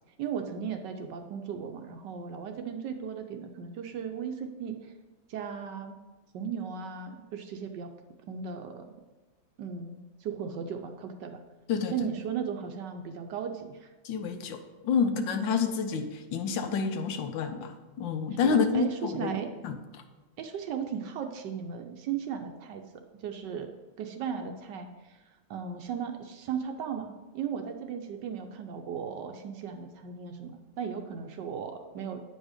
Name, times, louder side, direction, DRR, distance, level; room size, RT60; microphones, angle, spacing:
voice 1, 0.2-4.8 5.3-5.9 6.3-7.9 8.3-8.8 9.6-11.4 11.9-13.9 18.4-19.5 20.4-22.8 23.2-23.7 24.0-25.2 25.5-32.2, right 7 dB, 70° right, 5 dB, 1.2 m, -36 dB
voice 2, 14.0-19.4 19.6-20.0, left 6 dB, 75° left, 7 dB, 1.4 m, -29 dB
8.9 x 5.4 x 4.9 m, 1.2 s
omnidirectional pair, 2.2 m